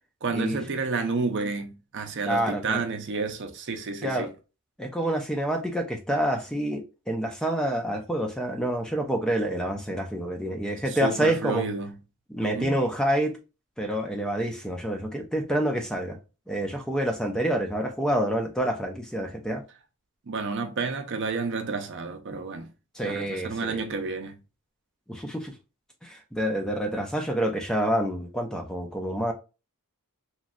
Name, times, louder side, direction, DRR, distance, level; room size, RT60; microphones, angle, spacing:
voice 1, 0.2-4.3 10.9-11.9 12.4-12.8 20.3-22.7 23.0-24.4, right 4 dB, 55° right, 0.5 m, -30 dB
voice 2, 2.3-2.8 4.0-4.3 4.8-11.7 12.3-13.4 13.8-16.2 16.5-19.6 22.9-23.8 25.1-25.5 26.0-29.3, right 1 dB, 5° left, 0.4 m, -27 dB
3.0 x 2.6 x 2.4 m
head